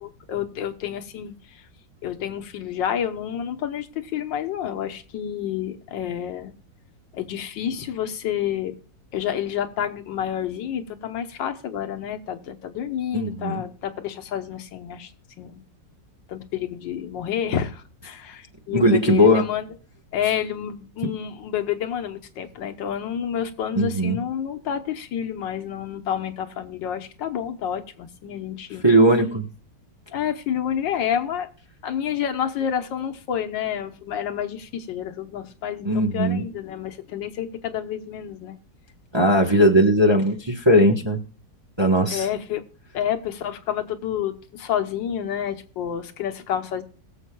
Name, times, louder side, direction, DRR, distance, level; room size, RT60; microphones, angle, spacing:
voice 1, 0.0-1.7 2.0-6.5 7.1-8.8 9.1-15.1 15.4-15.6 16.3-19.7 20.1-28.9 30.1-31.5 31.8-38.6 42.1-42.6 42.9-46.8, left 9 dB, 90° left, 7 dB, 1.7 m, -29 dB
voice 2, 13.1-13.6 18.7-19.4 23.7-24.2 28.8-29.5 35.8-36.4 39.1-41.2 41.8-42.2, equal, 20° right, 1 dB, 0.9 m, -18 dB
22.0 x 7.4 x 2.3 m, 0.41 s
omnidirectional pair, 1.9 m